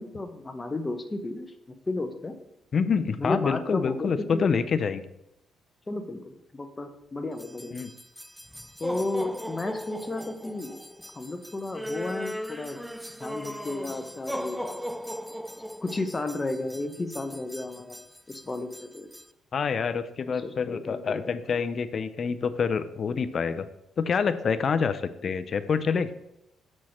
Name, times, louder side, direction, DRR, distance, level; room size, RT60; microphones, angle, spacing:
voice 1, 0.0-2.3 3.2-4.5 5.9-7.8 8.8-10.8 11.1-12.8 13.2-14.8 15.8-19.1 20.3-21.4, left 2 dB, 20° left, 7 dB, 0.9 m, -33 dB
voice 2, 2.7-5.0 7.7-7.9 19.5-23.7 24.0-26.1, left 6 dB, 50° left, 11 dB, 0.6 m, -27 dB
sound 1, 7.4-19.3, equal, ahead, 0.4 m, -38 dB
6.1 x 4.4 x 6.3 m, 0.84 s
cardioid pair, 90°, 0 cm